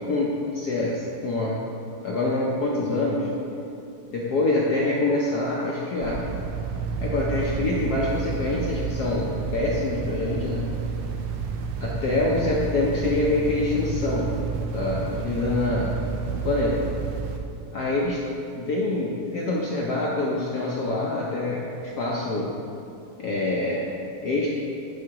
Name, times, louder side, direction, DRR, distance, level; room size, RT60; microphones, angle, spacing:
voice 1, 0.0-1.6 2.0-3.3 4.1-6.2 7.0-10.6 11.8-14.3 14.7-15.9 16.4-16.7 17.7-18.2 18.5-22.5 23.2-23.9 24.2-24.5, left 2 dB, 65° left, -4 dB, 1.0 m, -25 dB
sound 1, 6.0-17.4, right 5 dB, 90° right, 1.5 m, -30 dB
11.0 x 4.7 x 2.9 m, 2.8 s
omnidirectional pair, 2.4 m